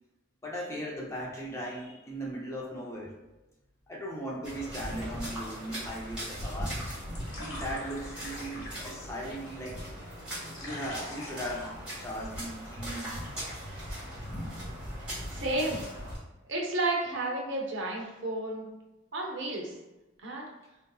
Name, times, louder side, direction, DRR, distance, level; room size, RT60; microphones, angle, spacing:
voice 1, 0.4-3.1 3.9-6.8 7.4-9.8 10.6-11.7 12.0-13.2, equal, 15° left, -4 dB, 0.4 m, -38 dB
sound 1, 4.4-16.2, equal, 5° right, 1.3 m, -39 dB
sound 2, 6.6-12.6, left 1 dB, 90° left, 1.1 m, -46 dB
voice 2, 15.0-15.8 16.5-18.6 19.1-19.7 20.2-20.4, right 2 dB, 65° right, -1 dB, 0.7 m, -32 dB
3.7 x 2.6 x 2.3 m, 1.0 s
head